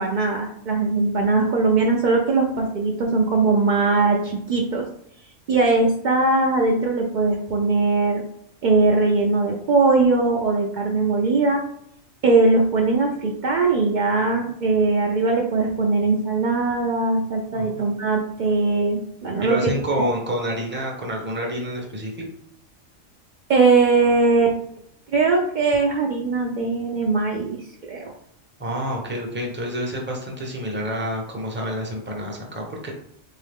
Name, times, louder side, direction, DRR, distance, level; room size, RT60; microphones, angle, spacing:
voice 1, 0.0-4.9 5.5-8.2 8.6-11.6 12.2-19.7 23.5-24.6 25.1-27.6 27.9-28.1, right 3 dB, 80° right, 0 dB, 0.4 m, -20 dB
voice 2, 19.4-22.2 28.6-32.9, equal, 10° right, -1 dB, 0.6 m, -28 dB
3.6 x 2.8 x 3.5 m, 0.71 s
omnidirectional pair, 1.4 m